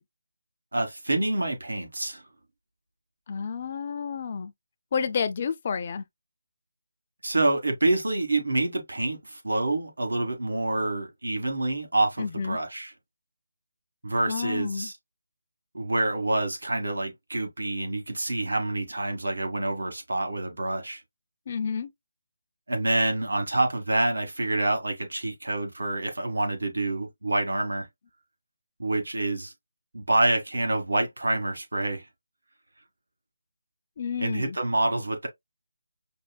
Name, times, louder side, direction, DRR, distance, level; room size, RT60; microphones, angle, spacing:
voice 1, 0.7-2.2 7.2-12.9 14.0-14.9 15.7-21.0 22.7-27.9 28.8-29.5 29.9-32.0 34.2-35.3, right 2 dB, 85° right, 1.5 m, -27 dB
voice 2, 3.3-4.5 4.9-6.0 12.2-12.6 14.3-14.9 21.5-21.9 34.0-34.6, left 6 dB, 35° left, 0.4 m, -30 dB
5.3 x 2.1 x 2.2 m
figure-of-eight pair, 165°, 0 cm